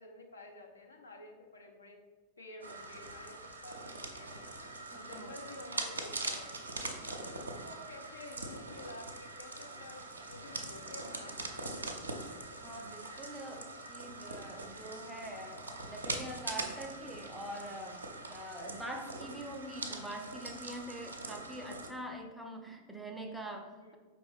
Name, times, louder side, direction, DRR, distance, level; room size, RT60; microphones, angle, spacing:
voice 1, 0.0-2.0 2.4-4.6 4.9-6.6 7.2-11.9 23.8-23.9, left 2 dB, 75° left, 2 dB, 0.6 m, -51 dB
sound 1, 2.6-21.9, right 2 dB, 80° right, 0.5 m, -43 dB
voice 2, 4.9-5.4 7.0-7.3 12.6-18.0 18.3-24.0, right 1 dB, 5° right, 3 dB, 0.5 m, -44 dB
4.9 x 3.2 x 3.4 m, 1.4 s
figure-of-eight pair, 90°, 0 cm